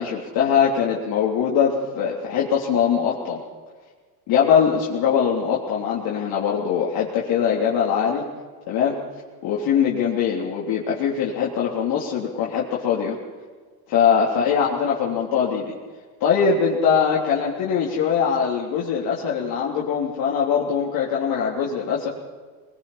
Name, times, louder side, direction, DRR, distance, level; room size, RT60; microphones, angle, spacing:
voice 1, 0.0-3.4 4.3-8.2 8.7-9.0 9.4-13.2 13.9-15.7 16.2-22.1, left 7 dB, 55° left, -5 dB, 3.5 m, -22 dB
22.5 x 21.0 x 5.7 m, 1.5 s
supercardioid pair, 105°, 43 cm